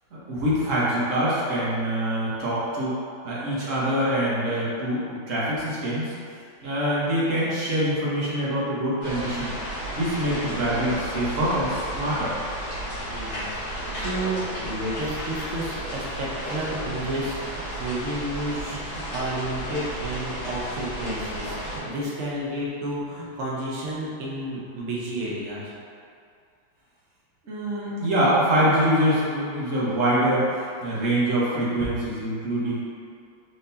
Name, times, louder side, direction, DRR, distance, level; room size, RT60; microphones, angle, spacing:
voice 1, 0.1-3.0 3.2-6.1 6.6-9.6 9.9-12.3 27.4-32.8, right 1 dB, 45° right, -9 dB, 1.2 m, -24 dB
sound 1, 9.0-21.8, equal, 40° left, 1.4 m, -33 dB
voice 2, 13.1-25.7, right 1 dB, 85° right, -6 dB, 0.6 m, -31 dB
4.5 x 3.6 x 2.8 m, 2.4 s
omnidirectional pair, 2.2 m